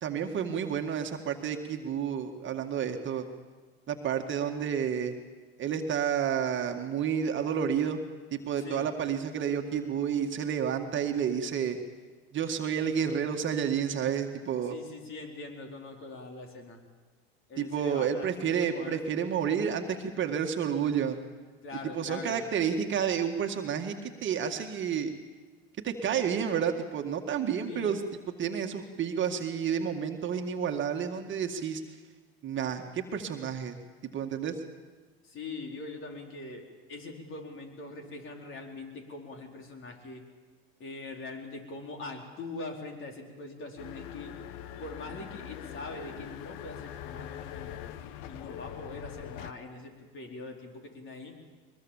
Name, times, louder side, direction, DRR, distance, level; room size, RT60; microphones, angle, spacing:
voice 1, 0.0-3.2 3.9-5.1 5.6-8.0 8.3-11.8 12.3-14.8 17.6-21.2 21.9-23.9 24.2-25.1 25.8-28.0 28.4-31.8 32.4-33.8 34.0-34.6, right 8 dB, 35° right, 4 dB, 2.0 m, -30 dB
voice 2, 8.6-8.9 14.7-16.8 17.5-19.1 21.6-22.5 27.7-27.9 35.2-40.2 40.8-44.3 44.8-47.9 48.3-51.4, left 3 dB, 40° left, 2 dB, 4.4 m, -42 dB
sound 1, 43.8-49.5, left 11 dB, 60° left, 1.2 m, -42 dB
22.5 x 21.5 x 7.3 m, 1.4 s
hypercardioid pair, 95°, 32 cm